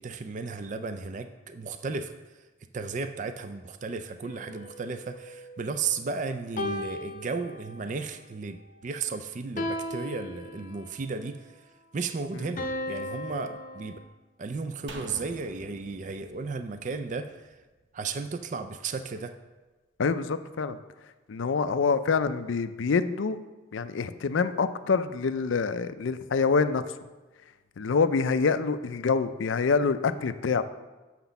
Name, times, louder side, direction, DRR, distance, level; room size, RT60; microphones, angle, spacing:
voice 1, 0.0-2.1 2.7-11.4 11.9-14.0 14.4-17.4 17.9-19.3, right 4 dB, 40° right, 8 dB, 0.4 m, -34 dB
sound 1, 4.2-6.0 6.6-8.0 9.6-11.0 12.6-14.0, left 1 dB, 40° left, 0.7 m, -36 dB
sound 2, 14.9-18.2 18.5-18.6, right 2 dB, 75° right, 0.8 m, -47 dB
voice 2, 20.0-20.8 21.3-23.4 23.7-26.8 27.8-30.6, left 5 dB, 85° left, 11 dB, 0.5 m, -26 dB
6.3 x 5.9 x 7.0 m, 1.2 s
head